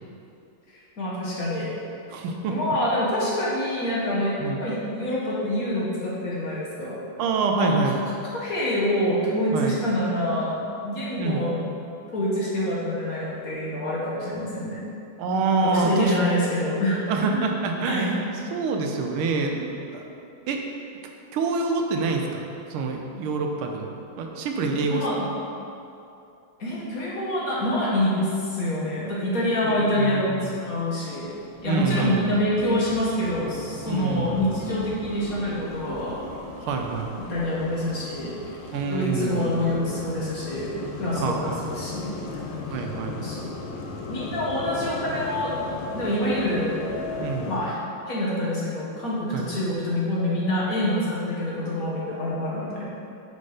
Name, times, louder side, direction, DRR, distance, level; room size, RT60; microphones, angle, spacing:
voice 1, 0.7-1.8 2.5-7.0 7.5-7.8 8.3-11.6 12.1-14.8 15.6-17.5 17.9-18.2 24.8-25.3 26.6-31.3 31.6-36.2 37.2-38.3 38.9-40.7 41.0-42.4 42.7-42.8 43.2-43.4 44.1-45.5 45.9-46.8 47.4-47.7 48.1-52.9, left 1 dB, 50° left, -6 dB, 1.2 m, -26 dB
voice 2, 2.1-2.5 4.4-4.6 7.2-8.0 9.5-9.8 11.2-11.5 15.2-16.2 17.1-18.2 18.5-20.0 20.5-20.6 21.3-23.9 24.2-25.0 29.7-30.5 31.6-32.4 33.8-34.5 36.6-37.1 38.7-39.5 41.2-41.6 42.7-43.2 47.2-47.5 49.3-49.5, right 4 dB, 85° right, 3 dB, 1.5 m, -26 dB
sound 1, 30.0-47.6, left 3 dB, 70° left, 1.3 m, -37 dB
5.7 x 4.3 x 4.8 m, 2.7 s
omnidirectional pair, 2.3 m